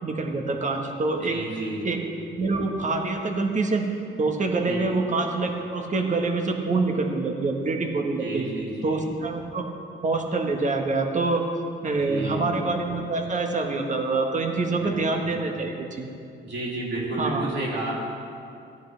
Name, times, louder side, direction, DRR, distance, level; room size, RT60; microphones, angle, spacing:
voice 1, 0.0-1.4 1.8-2.0 2.4-3.8 4.2-8.4 8.8-9.7 10.0-11.4 11.8-16.1 17.2-17.5, right 3 dB, 40° right, 3 dB, 1.5 m, -26 dB
voice 2, 1.2-1.8 4.6-4.9 8.2-8.9 12.0-12.4 14.7-15.3 16.4-18.0, right 2 dB, 60° right, -4 dB, 3.2 m, -31 dB
14.5 x 10.0 x 3.4 m, 2.5 s
cardioid pair, 90°, 20 cm